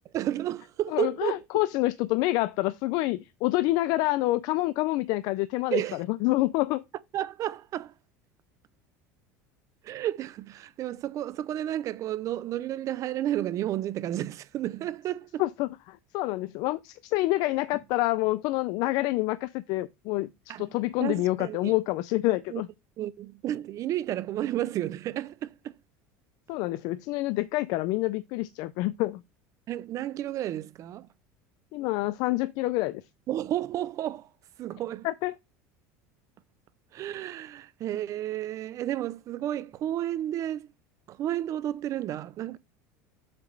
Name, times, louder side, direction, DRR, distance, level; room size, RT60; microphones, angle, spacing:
voice 1, 0.1-1.6 5.7-6.0 7.1-7.9 9.8-15.4 20.5-20.6 21.0-21.7 22.5-22.6 23.0-25.8 29.7-31.1 33.3-34.3 34.6-35.1 36.9-40.7 41.1-42.6, right 12 dB, 45° right, 0.6 m, -32 dB
voice 2, 0.9-5.8 6.1-6.8 15.4-20.3 20.6-22.7 26.5-29.2 31.7-33.0 35.0-35.3, left 18 dB, 65° left, 0.5 m, -27 dB
7.6 x 3.0 x 5.8 m
supercardioid pair, 110°, 7 cm